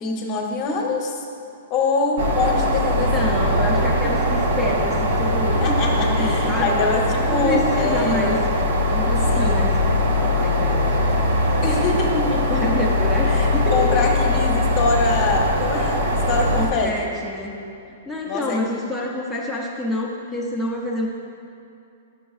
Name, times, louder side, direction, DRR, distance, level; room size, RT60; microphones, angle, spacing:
voice 1, 0.0-1.3 1.7-3.5 5.5-8.4 9.2-9.8 11.6-12.5 13.2-16.9 18.2-18.7, left 3 dB, 30° left, 1 dB, 0.8 m, -24 dB
sound 1, 2.2-16.7, left 1 dB, 80° right, 1.0 m, -21 dB
voice 2, 3.0-6.9 7.3-8.4 8.9-9.8 10.2-11.3 12.2-14.2 16.5-17.6 18.1-21.1, left 1 dB, ahead, -4 dB, 0.5 m, -28 dB
10.5 x 6.2 x 2.4 m, 2.7 s
hypercardioid pair, 160°, 0 cm